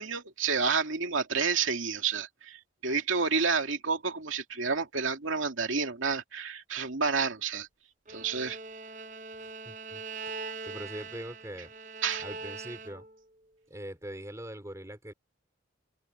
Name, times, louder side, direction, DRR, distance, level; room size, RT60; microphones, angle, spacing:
voice 1, 0.0-7.7 8.1-8.6 12.0-12.2, right 5 dB, 80° right, 2.5 m, -30 dB
Bowed string instrument, 8.1-13.2, right 4 dB, 40° right, 0.9 m, -42 dB
voice 2, 9.4-10.0 10.7-11.7 12.2-13.1 13.7-15.1, right 1 dB, 15° right, 3.2 m, -42 dB
open air
head